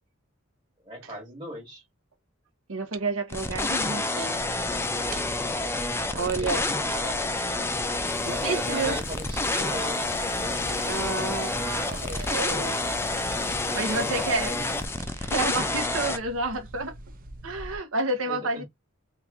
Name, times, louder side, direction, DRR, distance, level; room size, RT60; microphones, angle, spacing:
voice 1, 0.8-1.8 3.7-4.2 6.1-7.3 8.3-10.5 11.5-12.4 12.8-13.2 13.9-14.2 14.5-14.8 18.3-18.6, right 1 dB, 25° right, 1.4 m, -39 dB
voice 2, 2.7-4.4 6.2-6.6 8.2-9.0 10.9-12.8 13.7-14.5 15.2-17.0 17.4-18.6, right 3 dB, 75° right, 1.0 m, -30 dB
sound 1, 3.3-16.2, left 2 dB, 10° left, 0.4 m, -29 dB
sound 2, 4.4-17.8, right 2 dB, 45° right, 0.6 m, -43 dB
Water, 8.1-14.9, left 4 dB, 60° left, 0.7 m, -43 dB
3.0 x 2.5 x 3.5 m
head